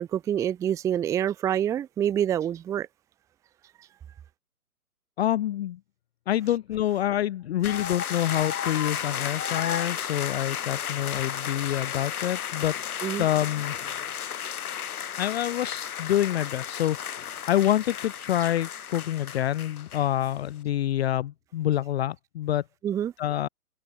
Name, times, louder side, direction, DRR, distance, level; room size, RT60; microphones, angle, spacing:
voice 1, 0.0-2.9 13.0-13.3 22.8-23.1, right 10 dB, 5° right, 0.7 m, -26 dB
voice 2, 5.2-5.8 6.3-12.7 13.2-13.7 15.2-22.6 23.2-23.5, left 12 dB, 45° left, 0.9 m, -27 dB
sound 1, 7.6-20.3, left 9 dB, 70° left, 1.3 m, -33 dB
hypercardioid pair, 140°, 45 cm